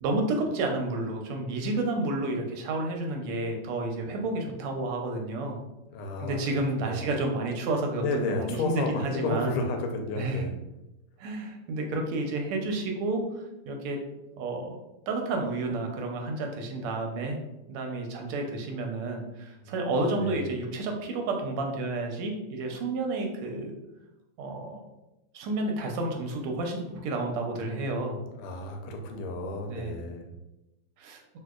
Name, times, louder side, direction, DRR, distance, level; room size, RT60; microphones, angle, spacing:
voice 1, 0.0-5.6 6.2-9.5 10.2-10.5 11.2-13.2 13.7-14.0 14.4-14.8 15.1-17.4 17.7-23.7 24.4-24.8 25.3-28.2 29.7-30.0 31.0-31.2, right 2 dB, 85° right, 2 dB, 1.5 m, -30 dB
voice 2, 5.9-6.4 6.7-7.1 8.0-10.5 19.6-19.9 20.2-20.4 27.5-30.3, left 2 dB, 90° left, 3 dB, 1.5 m, -32 dB
3.6 x 2.7 x 2.3 m, 0.95 s
omnidirectional pair, 2.4 m